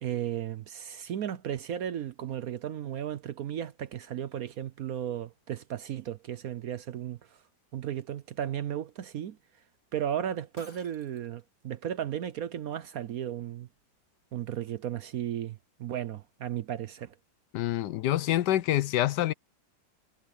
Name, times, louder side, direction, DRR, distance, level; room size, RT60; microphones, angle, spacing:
voice 1, 0.0-7.2 7.7-9.4 9.9-13.7 14.3-17.1, right 10 dB, 65° right, 1.0 m, -35 dB
Shatter, 10.6-11.4, left 3 dB, 40° left, 4.1 m, -54 dB
voice 2, 17.5-19.3, left 13 dB, 75° left, 1.2 m, -26 dB
omnidirectional pair, 2.0 m